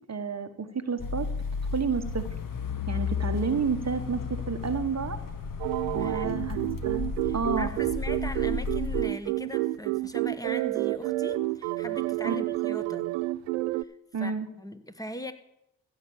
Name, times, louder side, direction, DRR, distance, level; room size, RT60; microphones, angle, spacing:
voice 1, 0.1-1.3 1.6-2.2 2.9-5.2 5.9-7.0 7.3-7.7 12.2-12.4 14.1-14.5, right 5 dB, 30° right, 8 dB, 1.2 m, -30 dB
sound 1, 1.0-9.0, left 5 dB, 40° left, 1.4 m, -33 dB
sound 2, 5.6-13.8, right 18 dB, 75° right, 0.5 m, -29 dB
voice 2, 6.0-6.5 7.2-13.1 13.7-13.9 14.2-14.3 14.6-15.3, left 1 dB, 5° left, 10 dB, 1.4 m, -40 dB
15.0 x 6.5 x 7.2 m, 0.83 s
hypercardioid pair, 40°, 49 cm